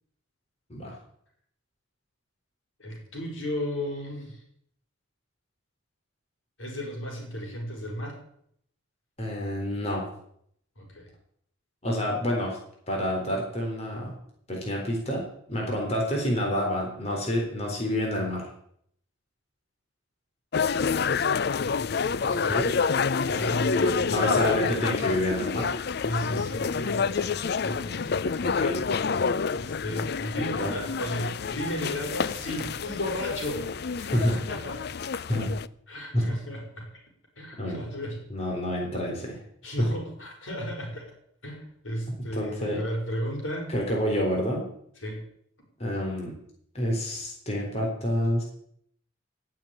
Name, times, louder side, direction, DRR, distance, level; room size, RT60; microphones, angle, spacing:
voice 1, 2.8-4.4 6.6-8.2 10.8-11.1 22.2-22.7 23.2-24.3 26.0-28.3 29.5-34.8 35.9-36.9 37.4-38.3 39.6-41.1 41.4-43.7 45.0-45.2, equal, 80° left, 1 dB, 5.7 m, -34 dB
voice 2, 9.2-10.0 11.8-12.6 12.9-14.1 14.5-15.2 15.5-18.4 22.2-22.7 24.1-25.7 28.4-28.8 30.4-30.8 34.1-34.3 35.3-35.5 36.1-36.2 37.6-37.8 38.3-39.4 39.8-39.9 42.3-42.8 43.7-44.7 45.8-46.3 46.7-48.4, equal, 30° left, -1 dB, 4.0 m, -28 dB
sound 1, 20.5-35.7, left 5 dB, 55° left, 0.5 m, -28 dB
17.0 x 7.6 x 8.8 m, 0.69 s
head